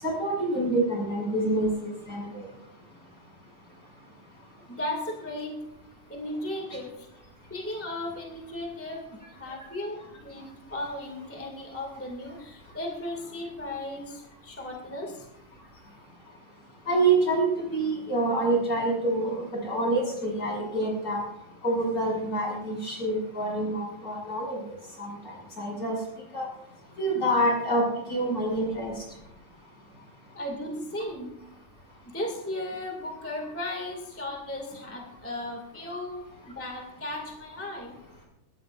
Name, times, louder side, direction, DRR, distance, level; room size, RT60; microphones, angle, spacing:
voice 1, 0.0-2.5 16.9-17.4 17.7-21.2 21.6-24.6 25.0-26.0 26.3-26.5 27.0-27.8 28.1-28.9, right 2 dB, 25° left, -2 dB, 7.2 m, -27 dB
voice 2, 4.6-5.6 6.1-7.1 7.5-15.3 30.3-31.3 32.0-38.0, left 1 dB, 5° left, 0 dB, 1.5 m, -36 dB
23.0 x 18.0 x 2.6 m, 0.88 s
omnidirectional pair, 4.0 m